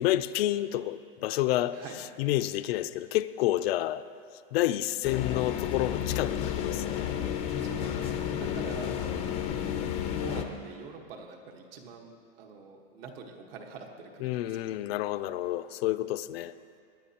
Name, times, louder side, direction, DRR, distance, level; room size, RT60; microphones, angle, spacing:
voice 1, 0.0-4.1 4.5-7.1 8.4-9.3 14.2-16.5, left 14 dB, 70° left, 0.5 m, -30 dB
sound 1, 5.0-10.4, left 9 dB, 20° left, 0.4 m, -32 dB
voice 2, 7.6-9.3 10.2-14.5, right 4 dB, 65° right, 1.5 m, -44 dB
19.0 x 10.5 x 2.9 m
supercardioid pair, 165°, 31 cm